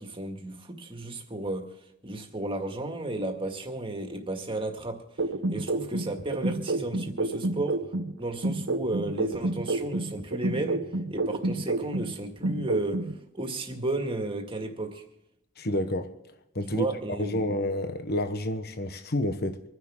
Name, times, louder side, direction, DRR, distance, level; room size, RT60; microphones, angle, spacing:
voice 1, 0.0-1.8 2.0-5.0 5.5-7.8 8.2-15.0 16.7-17.4, right 2 dB, 25° right, 2.0 m, -33 dB
sound 1, 5.2-8.1 8.4-12.1 12.4-13.1, right 2 dB, 60° right, 1.1 m, -29 dB
voice 2, 15.6-16.1 16.5-19.6, left 1 dB, 50° left, 1.1 m, -29 dB
26.5 x 10.5 x 3.7 m
head